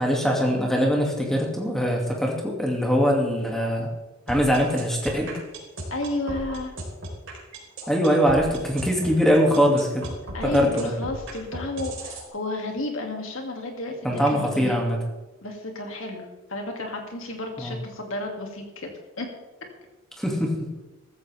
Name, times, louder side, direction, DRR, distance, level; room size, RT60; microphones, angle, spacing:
voice 1, 0.0-3.9 4.3-5.4 7.9-10.1 10.4-10.9 14.0-15.0 17.6-17.8 20.2-20.7, equal, ahead, -1 dB, 2.3 m, -22 dB
sound 1, 4.3-12.3, right 1 dB, 60° right, 4.2 m, -36 dB
voice 2, 5.9-6.7 10.3-14.8 15.4-18.9 19.2-19.3, left 2 dB, 70° left, 2 dB, 2.5 m, -32 dB
14.5 x 14.5 x 3.5 m, 1.1 s
head